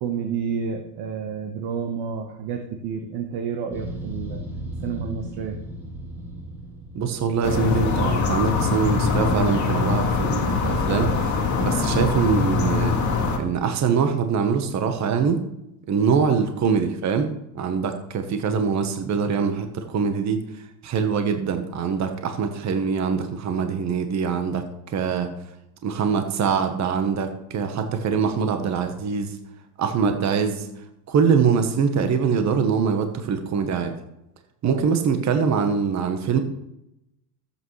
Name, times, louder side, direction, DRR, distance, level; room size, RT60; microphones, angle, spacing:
voice 1, 0.0-4.4 4.8-5.6 16.3-16.4 34.6-34.8, right 6 dB, 55° right, 5 dB, 1.3 m, -30 dB
sound 1, 3.7-7.9, right 1 dB, 5° right, 3.4 m, -36 dB
voice 2, 6.9-13.0 13.4-15.4 15.9-20.4 20.8-25.3 25.8-29.4 29.8-30.7 31.1-34.0 34.6-36.4, right 6 dB, 35° right, 7 dB, 1.1 m, -23 dB
sound 2, 7.4-13.4, left 4 dB, 35° left, 2.2 m, -23 dB
14.5 x 8.3 x 3.2 m, 0.86 s
supercardioid pair, 110°, 50 cm